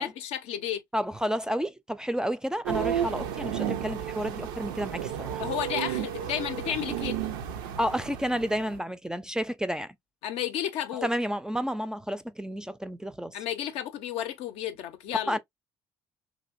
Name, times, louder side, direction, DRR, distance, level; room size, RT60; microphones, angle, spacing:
voice 1, 0.0-0.8 5.4-7.2 10.2-11.1 13.3-15.4, left 10 dB, 65° left, 0.5 m, -32 dB
voice 2, 0.9-5.4 7.8-9.9 11.0-13.4 15.3-15.4, equal, 5° right, 0.3 m, -31 dB
sound 1, 2.7-8.8, right 9 dB, 80° right, 0.4 m, -32 dB
3.0 x 2.5 x 2.3 m
hypercardioid pair, 55°, 11 cm